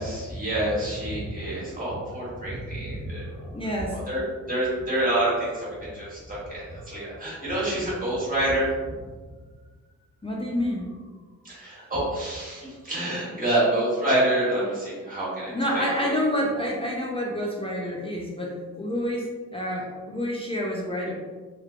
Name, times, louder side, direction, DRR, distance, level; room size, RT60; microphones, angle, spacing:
voice 1, 0.0-3.5 4.1-4.2 4.5-8.7 11.4-15.9, right 1 dB, 25° right, -8 dB, 1.3 m, -27 dB
voice 2, 3.5-4.0 10.2-10.9 15.5-21.1, equal, 20° left, -3 dB, 0.4 m, -28 dB
3.2 x 3.1 x 2.4 m, 1.4 s
wide cardioid pair, 155°, 31 cm